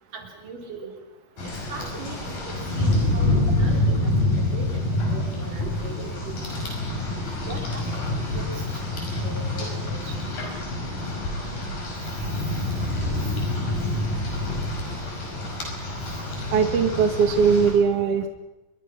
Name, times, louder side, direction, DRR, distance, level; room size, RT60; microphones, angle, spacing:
voice 1, 0.1-0.9 1.7-2.3 2.8-3.3 3.6-3.9 4.5-4.8 5.1-6.4 7.5-8.0 8.3-8.5 9.2-10.1, right 3 dB, 75° right, 2 dB, 5.3 m, -39 dB
Rain, 1.4-17.7, left 1 dB, 75° left, 7.0 m, -27 dB
voice 2, 16.5-18.3, right 6 dB, 50° right, 6 dB, 2.3 m, -20 dB
26.5 x 22.5 x 5.9 m, 0.98 s
omnidirectional pair, 3.8 m